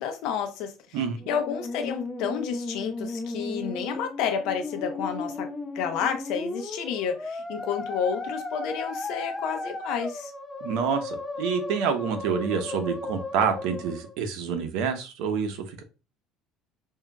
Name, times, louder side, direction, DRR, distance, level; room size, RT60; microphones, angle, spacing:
voice 1, 0.0-1.0 1.3-5.5 5.7-10.3, left 7 dB, 70° left, 0.8 m, -30 dB
Musical instrument, 1.2-14.2, left 2 dB, 15° left, 0.6 m, -35 dB
voice 2, 10.6-15.8, right 6 dB, 80° right, 0.8 m, -27 dB
5.5 x 2.7 x 2.3 m
cardioid pair, 130°, 0 cm